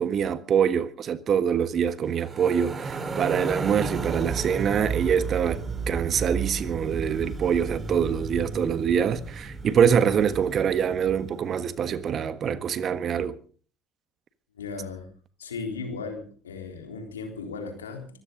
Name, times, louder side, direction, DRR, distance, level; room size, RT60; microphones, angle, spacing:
voice 1, 0.0-13.4, right 7 dB, 45° right, 1.4 m, -25 dB
sound 1, 2.1-11.4, right 4 dB, 30° right, 2.9 m, -33 dB
voice 2, 14.5-15.1 15.4-18.1, left 4 dB, 90° left, 3.8 m, -36 dB
24.0 x 14.5 x 3.9 m
hypercardioid pair, 60°, 0 cm